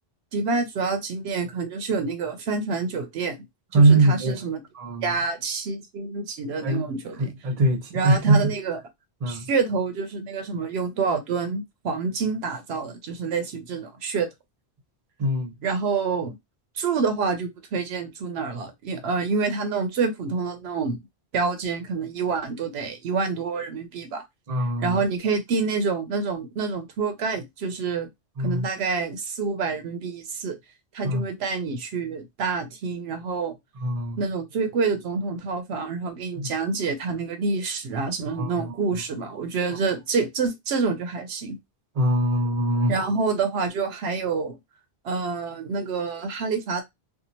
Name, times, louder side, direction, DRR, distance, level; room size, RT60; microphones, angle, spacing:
voice 1, 0.3-3.4 3.7-4.6 5.0-7.3 7.9-8.8 9.3-14.3 15.6-16.4 16.7-21.0 21.3-24.2 24.8-28.1 28.4-30.6 30.9-33.5 34.2-41.6 42.9-44.6 45.0-46.8, right 4 dB, 75° right, 0.8 m, -27 dB
voice 2, 3.7-4.4 4.7-5.1 6.6-6.9 7.2-8.5 9.2-9.5 15.2-15.5 24.5-25.0 28.4-28.7 31.0-31.2 33.8-34.2 36.4-36.5 38.3-39.0 42.0-42.9, right 2 dB, 40° right, 0.7 m, -22 dB
2.6 x 2.4 x 2.8 m
omnidirectional pair, 1.1 m